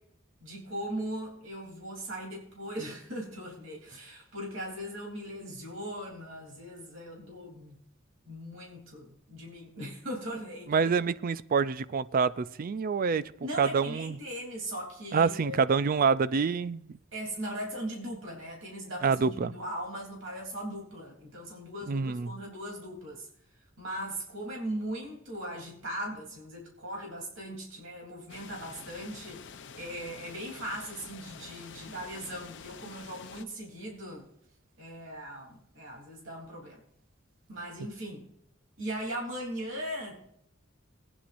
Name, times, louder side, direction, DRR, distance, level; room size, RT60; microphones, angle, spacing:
voice 1, 0.4-7.8 8.2-10.9 13.4-15.6 17.1-23.3 23.8-29.4 29.7-34.2 34.8-36.8 37.5-38.2 38.8-40.2, right 1 dB, 70° right, 3.3 m, -39 dB
voice 2, 10.7-13.3 13.6-14.2 15.1-17.0 19.0-19.5 21.9-22.3, right 5 dB, 45° right, 0.4 m, -27 dB
sound 1, 28.3-33.5, left 6 dB, 60° left, 0.7 m, -48 dB
20.0 x 9.8 x 2.6 m
head